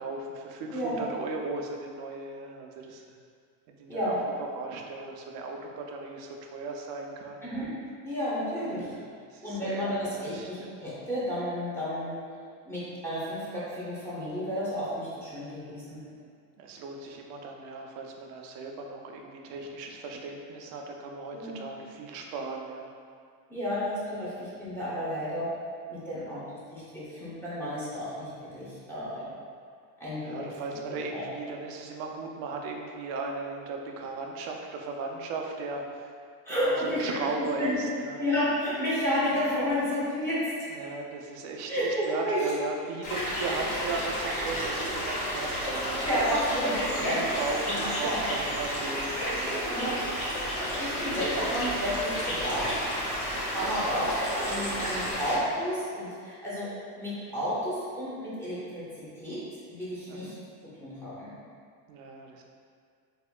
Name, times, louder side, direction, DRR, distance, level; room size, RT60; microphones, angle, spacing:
voice 1, 0.0-3.2 3.8-7.7 8.7-10.7 16.1-16.3 16.6-22.9 26.1-26.4 29.1-29.4 30.2-36.1 36.5-38.2 39.2-39.4 40.7-46.3 47.0-49.7 50.6-51.3 53.3-53.8 54.3-55.1 60.1-60.4 61.9-62.4, right 3 dB, 45° right, 1 dB, 0.5 m, -37 dB
voice 2, 8.0-8.8 9.4-12.1 12.6-16.0 21.3-21.6 23.5-25.5 25.9-26.4 26.7-28.3 28.5-29.2 30.0-30.5 30.9-31.2 36.4-37.8 38.2-40.4 41.7-42.4 46.0-47.2 47.6-48.2 49.7-49.9 50.6-52.6 53.5-54.1 54.4-56.7 57.0-59.4 59.7-60.3 60.8-61.3, equal, 5° left, -11 dB, 1.1 m, -31 dB
sound 1, 43.0-55.4, equal, 65° left, 1.5 m, -31 dB
4.3 x 2.8 x 2.2 m, 2.2 s
supercardioid pair, 135°, 49 cm